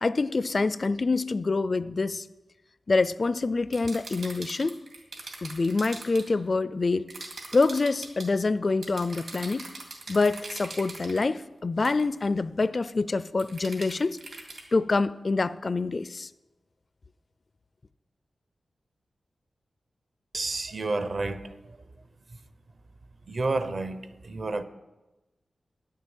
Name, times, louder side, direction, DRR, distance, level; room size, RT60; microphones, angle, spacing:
voice 1, 0.0-2.3 2.9-4.8 5.4-7.1 7.5-9.7 10.1-14.2 14.7-16.3, left 3 dB, 40° left, 0.3 m, -26 dB
sound 1, 3.7-6.3 7.1-8.3 8.8-11.3 11.8-12.1 13.4-14.6, right 3 dB, 65° right, 2.5 m, -42 dB
voice 2, 20.3-21.5 23.3-24.0 24.2-24.6, right 3 dB, 45° right, 0.7 m, -29 dB
10.0 x 7.4 x 8.8 m
wide cardioid pair, 125°, 0 cm